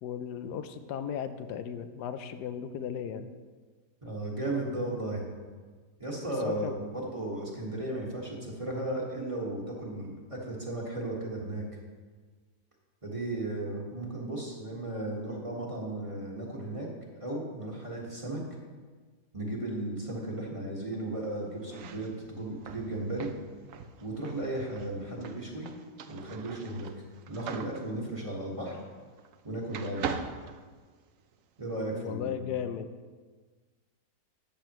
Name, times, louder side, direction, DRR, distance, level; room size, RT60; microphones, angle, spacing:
voice 1, 0.0-3.3 6.2-6.8 31.9-32.9, left 8 dB, 80° left, 9 dB, 1.2 m, -36 dB
voice 2, 4.0-5.2 6.0-11.6 13.0-16.9 17.2-18.4 19.3-23.3 24.0-25.7 26.1-26.9 27.3-28.8 29.4-30.3 31.6-32.6, right 1 dB, 20° right, -2 dB, 1.5 m, -35 dB
sound 1, 21.6-29.4 29.7-31.3, right 6 dB, 65° right, 0.9 m, -42 dB
13.0 x 8.6 x 3.1 m, 1.4 s
omnidirectional pair, 1.7 m